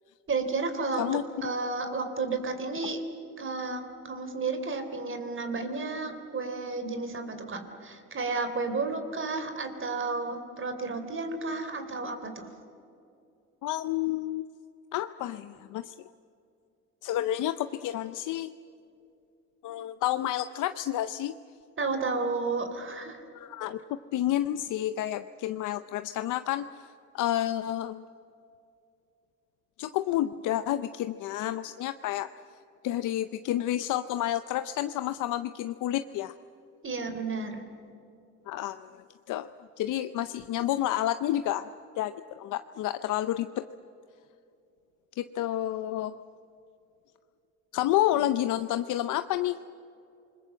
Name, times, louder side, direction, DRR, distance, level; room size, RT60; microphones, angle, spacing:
voice 1, 0.3-3.0 3.4-12.5 21.8-23.2 36.8-37.6, right 3 dB, 40° right, 8 dB, 3.6 m, -32 dB
voice 2, 13.6-14.5 14.9-15.9 17.0-18.5 19.6-21.3 23.3-23.8 24.1-26.9 27.1-28.0 29.8-32.3 32.8-36.3 38.5-39.5 39.8-41.7 42.0-43.6 45.2-46.1 47.7-49.6, left 13 dB, 85° left, 11 dB, 0.7 m, -30 dB
28.5 x 21.0 x 7.6 m, 2.7 s
cardioid pair, 90°, 30 cm